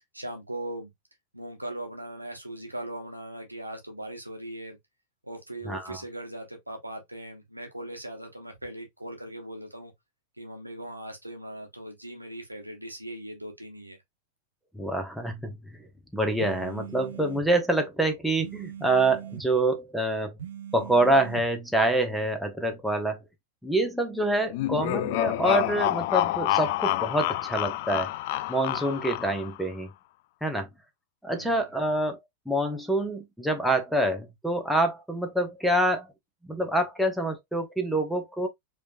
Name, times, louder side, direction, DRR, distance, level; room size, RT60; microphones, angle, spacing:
voice 1, 0.1-0.9 1.3-4.8 5.2-9.9 10.4-14.0 31.3-31.6, right 1 dB, 85° right, 1.2 m, -39 dB
voice 2, 5.7-6.0 14.7-15.6 16.1-20.3 20.7-23.2 23.6-28.1 28.5-29.9 30.4-30.7 31.2-32.2 32.5-36.1 36.4-38.5, right 1 dB, ahead, 1.1 m, -26 dB
sound 1, 16.4-17.5 18.4-19.5 20.4-21.5, right 9 dB, 60° right, 0.9 m, -40 dB
sound 2, 24.5-29.6, left 16 dB, 50° left, 0.3 m, -28 dB
4.8 x 3.2 x 2.6 m
figure-of-eight pair, 90°, 0 cm